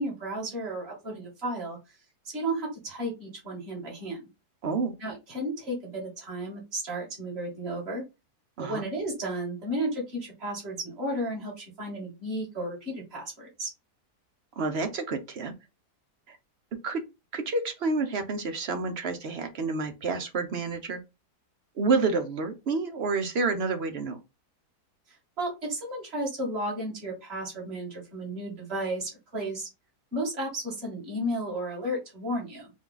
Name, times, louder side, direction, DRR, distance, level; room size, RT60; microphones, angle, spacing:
voice 1, 0.0-1.8 2.2-4.2 5.0-8.0 8.6-13.7 25.4-29.7 30.1-32.7, right 1 dB, 40° right, 2.0 m, -33 dB
voice 2, 4.6-4.9 8.6-8.8 14.6-15.5 16.3-16.4 16.8-17.0 17.3-21.0 21.8-24.2, right 4 dB, 60° right, 0.7 m, -29 dB
4.8 x 2.3 x 3.8 m
omnidirectional pair, 1.8 m